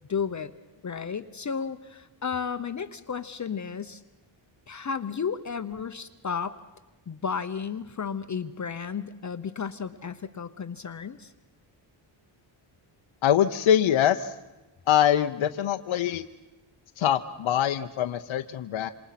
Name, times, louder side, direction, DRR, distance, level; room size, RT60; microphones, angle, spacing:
voice 1, 0.1-0.5 0.8-4.0 4.7-6.6 7.1-11.3, left 6 dB, 35° left, 10 dB, 0.8 m, -33 dB
voice 2, 13.2-14.3 14.9-16.3 17.0-18.9, left 10 dB, 75° left, 6 dB, 0.8 m, -23 dB
27.0 x 26.5 x 5.9 m, 1.1 s
wide cardioid pair, 140°, 49 cm